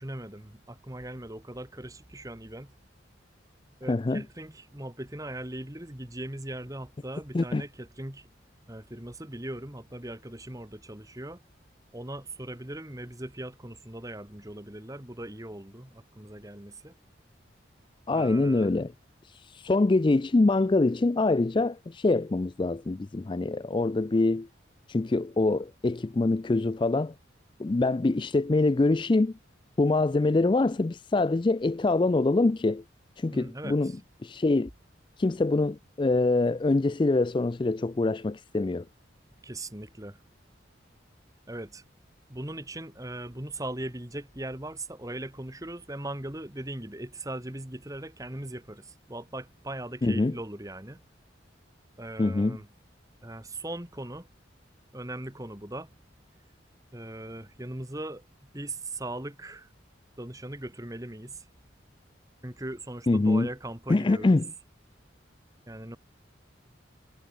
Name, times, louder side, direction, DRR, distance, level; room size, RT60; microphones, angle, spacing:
voice 1, 0.0-2.7 3.8-8.3 8.7-11.4 11.9-16.9 18.1-18.7 33.3-33.9 39.4-40.2 41.5-41.8 42.3-51.0 52.0-52.7 53.2-54.3 54.9-55.9 56.9-58.2 58.5-59.7 60.2-61.4 62.4-64.4 65.7-66.0, right 1 dB, 15° right, 1.9 m, -39 dB
voice 2, 3.9-4.2 7.3-7.6 18.1-18.9 19.3-24.5 24.9-27.1 27.6-29.3 29.8-32.8 33.2-33.9 34.2-34.7 35.2-38.8 50.0-50.3 52.2-52.6 63.1-63.5 63.9-64.5, left 2 dB, 25° left, 0.3 m, -24 dB
head